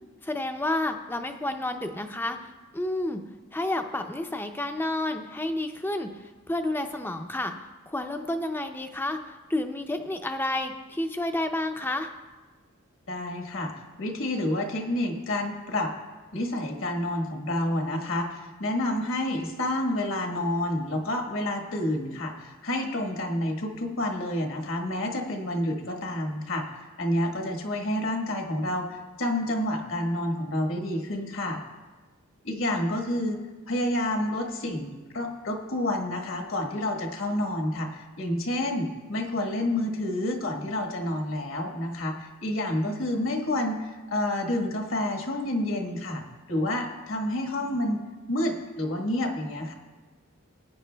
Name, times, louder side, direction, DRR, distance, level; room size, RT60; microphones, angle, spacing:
voice 1, 0.2-3.2 3.5-7.6 7.9-12.1, left 1 dB, 10° left, 6 dB, 0.5 m, -30 dB
voice 2, 13.1-13.7 14.0-15.9 16.3-26.6 27.0-31.6 32.4-33.4 33.7-46.2 46.5-48.0 48.3-49.7, left 1 dB, 70° left, 3 dB, 1.5 m, -29 dB
18.5 x 9.7 x 2.2 m, 1.3 s
head